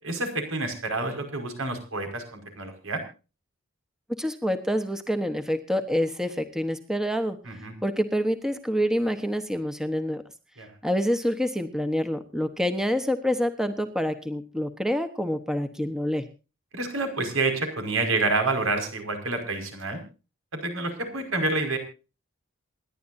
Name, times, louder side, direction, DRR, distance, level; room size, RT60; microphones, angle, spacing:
voice 1, 0.0-3.0 7.5-7.7 10.6-10.7 16.7-20.0 20.5-21.8, right 3 dB, 85° right, 6 dB, 5.3 m, -28 dB
voice 2, 4.1-7.6 7.8-10.2 10.8-16.2, equal, 5° right, 8 dB, 1.1 m, -27 dB
28.0 x 11.0 x 2.7 m, 0.33 s
head